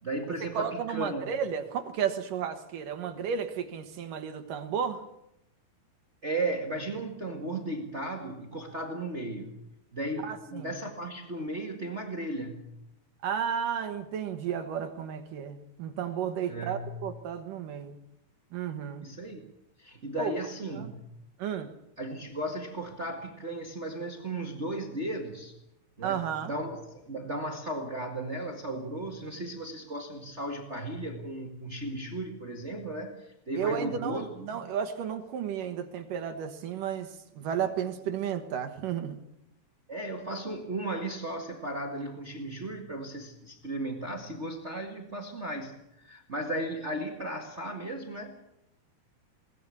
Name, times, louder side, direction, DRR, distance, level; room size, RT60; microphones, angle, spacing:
voice 1, 0.0-1.2 6.2-9.5 9.9-12.7 16.5-17.0 19.0-19.4 19.8-21.0 22.0-25.5 26.0-34.6 39.9-48.4, right 1 dB, 80° right, 3 dB, 0.6 m, -35 dB
voice 2, 0.5-5.0 10.2-10.7 13.2-18.0 18.5-19.1 20.2-20.3 20.8-20.9 21.4-21.7 26.0-26.5 33.6-39.2, right 8 dB, 65° right, 8 dB, 2.5 m, -33 dB
21.0 x 19.0 x 8.4 m, 0.83 s
omnidirectional pair, 4.8 m